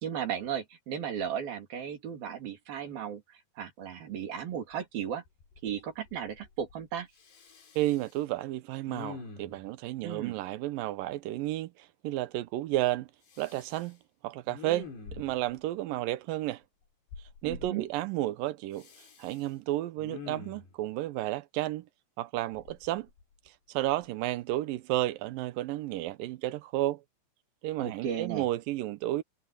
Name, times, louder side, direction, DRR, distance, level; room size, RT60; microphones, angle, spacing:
voice 1, 0.0-3.2 3.6-5.2 5.6-7.1 10.0-10.4 17.4-17.9 27.8-28.5, right 8 dB, 60° right, 4.7 m, -35 dB
Respiratory sounds, 4.7-4.8 5.3-5.8 6.1-6.8 7.2-8.2 8.9-9.7 13.3-13.9 14.5-15.5 17.1-17.7 18.8-19.5 20.0-20.7 22.5-23.5 23.9-24.1, left 4 dB, 70° left, 7.0 m, -46 dB
voice 2, 7.8-13.1 13.4-14.0 14.2-16.6 17.4-18.9 19.2-21.9 22.2-23.1 23.7-27.0 27.6-29.2, right 15 dB, 75° right, 2.2 m, -32 dB
omnidirectional pair, 4.9 m